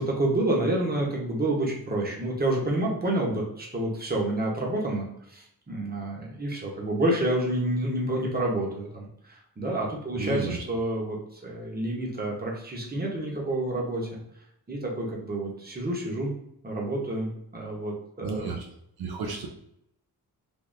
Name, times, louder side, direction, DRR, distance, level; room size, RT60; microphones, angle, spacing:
voice 1, 0.0-14.2 14.7-16.3 16.6-18.6, right 1 dB, 25° right, -2 dB, 1.0 m, -29 dB
voice 2, 10.2-10.6 18.2-18.7 19.0-19.5, right 4 dB, 75° right, 2 dB, 0.6 m, -32 dB
3.6 x 2.6 x 2.6 m, 0.76 s
wide cardioid pair, 100°, 38 cm